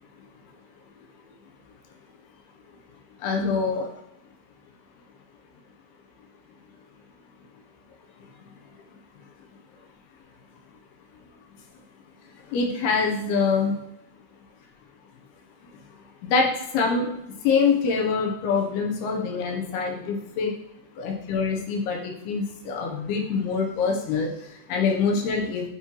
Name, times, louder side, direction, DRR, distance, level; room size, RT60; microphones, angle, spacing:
voice 1, 3.2-3.9 12.5-13.8 16.2-20.5 21.0-25.7, left 5 dB, 80° left, 1 dB, 2.8 m, -25 dB
9.1 x 4.4 x 3.0 m, 0.82 s
omnidirectional pair, 4.7 m